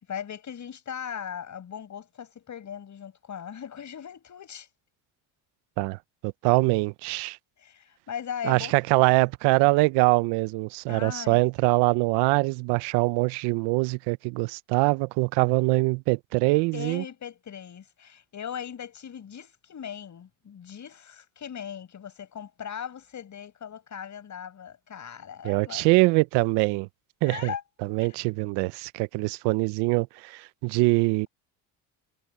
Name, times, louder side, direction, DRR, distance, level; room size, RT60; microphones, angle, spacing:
voice 1, 0.1-4.7 7.6-9.1 10.9-11.4 16.7-25.9 27.3-27.6 28.0-28.2, left 8 dB, 45° left, 6.2 m, -39 dB
voice 2, 5.8-7.4 8.4-17.0 25.4-26.9 27.2-27.5 27.9-31.3, right 25 dB, 85° right, 0.6 m, -23 dB
cardioid pair, 95°, 39 cm